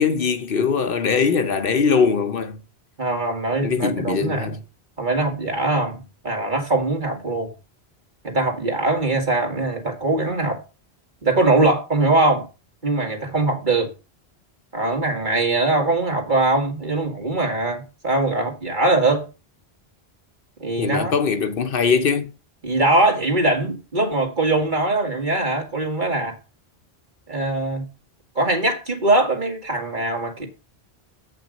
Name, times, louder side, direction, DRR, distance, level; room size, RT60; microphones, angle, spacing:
voice 1, 0.0-2.6 3.6-4.6 20.8-22.3, left 5 dB, 60° left, 1.0 m, -21 dB
voice 2, 3.0-4.5 5.0-7.5 8.2-10.6 11.2-12.5 12.8-13.9 14.7-19.3 20.6-21.1 22.6-26.4 27.3-27.8 28.4-30.5, right 2 dB, 50° right, 2.4 m, -21 dB
8.4 x 5.9 x 5.2 m
omnidirectional pair, 1.1 m